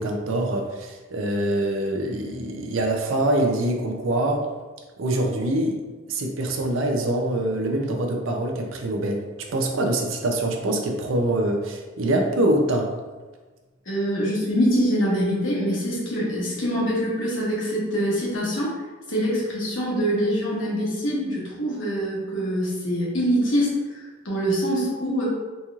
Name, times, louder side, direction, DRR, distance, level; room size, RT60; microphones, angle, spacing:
voice 1, 0.0-4.5 5.0-5.8 6.1-9.2 9.5-12.9, right 1 dB, 80° right, 2 dB, 0.5 m, -24 dB
voice 2, 13.9-18.7 19.1-25.3, equal, 70° left, -6 dB, 1.3 m, -24 dB
4.1 x 3.0 x 2.4 m, 1.3 s
head